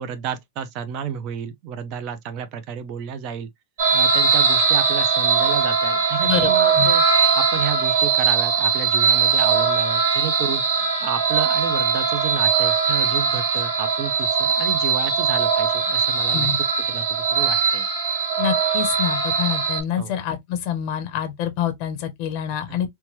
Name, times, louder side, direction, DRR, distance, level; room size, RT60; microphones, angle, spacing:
voice 1, 0.0-3.5 3.9-16.5 16.9-17.9 20.0-20.1 22.7-22.8, right 8 dB, 35° right, 0.5 m, -31 dB
sound 1, 3.8-19.8, right 5 dB, 85° right, 1.2 m, -20 dB
voice 2, 6.3-6.9 16.3-16.6 18.4-22.9, left 9 dB, 40° left, 0.6 m, -26 dB
2.9 x 2.2 x 2.9 m
supercardioid pair, 165°, 0 cm